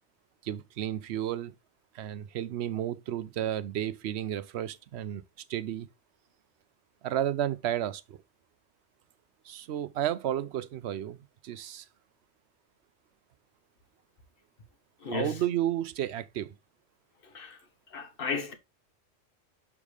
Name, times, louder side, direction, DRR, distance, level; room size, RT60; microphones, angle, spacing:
voice 1, 0.4-1.5 1.9-5.2 5.5-5.9 7.0-8.2 9.4-11.2 11.4-11.9 15.1-16.5, right 11 dB, 65° right, 0.8 m, -32 dB
voice 2, 15.0-15.4 17.2-17.6 17.9-18.5, left 5 dB, 45° left, 1.2 m, -34 dB
6.8 x 3.7 x 4.7 m
omnidirectional pair, 1.3 m